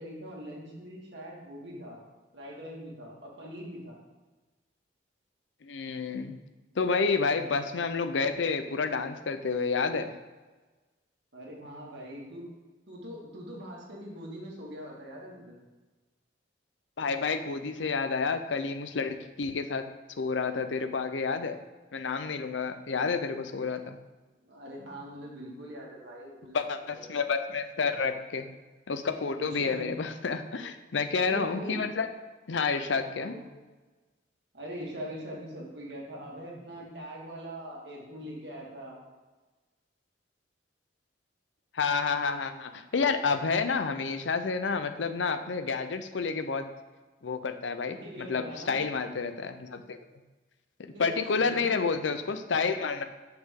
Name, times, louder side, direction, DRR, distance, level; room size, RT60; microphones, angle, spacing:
voice 1, 0.0-2.0 2.3-4.0 11.3-12.4 12.9-15.6 24.4-26.6 26.9-27.0 29.4-29.9 31.2-31.9 33.1-33.4 34.5-39.0 47.9-48.8 50.9-51.7, equal, 70° right, -3 dB, 2.0 m, -42 dB
voice 2, 5.6-6.4 6.8-10.1 17.0-19.8 20.2-21.6 21.9-24.0 26.5-28.5 28.9-32.1 32.5-33.3 41.7-46.7 47.2-50.0 50.8-53.0, left 5 dB, 85° left, 9 dB, 0.6 m, -29 dB
7.6 x 5.8 x 3.7 m, 1.2 s
head